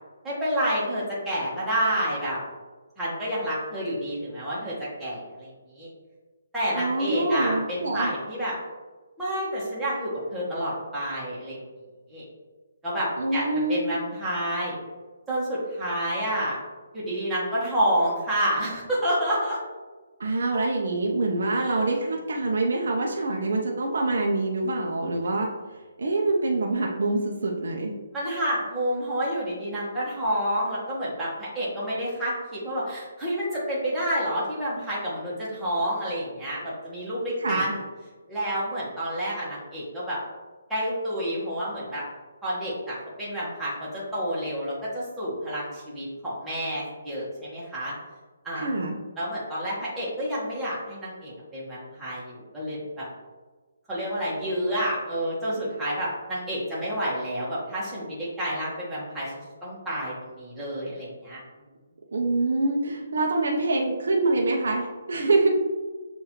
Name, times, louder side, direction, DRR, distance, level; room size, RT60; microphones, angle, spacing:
voice 1, 0.2-2.4 3.0-5.9 6.5-8.6 9.2-11.6 12.1-12.2 12.8-14.8 15.3-16.6 16.9-19.6 21.5-21.8 28.1-37.8 38.3-40.2 40.7-42.0 42.4-47.9 48.4-48.7 49.2-53.0 53.9-59.3 59.6-61.4, equal, 5° right, -10 dB, 1.2 m, -29 dB
voice 2, 6.7-8.1 13.2-13.9 20.2-25.5 26.0-27.9 37.4-37.6 48.5-48.9 62.1-65.5, right 2 dB, 70° right, 0 dB, 0.7 m, -25 dB
6.5 x 2.6 x 3.0 m, 1.3 s
hypercardioid pair, 160°, 0 cm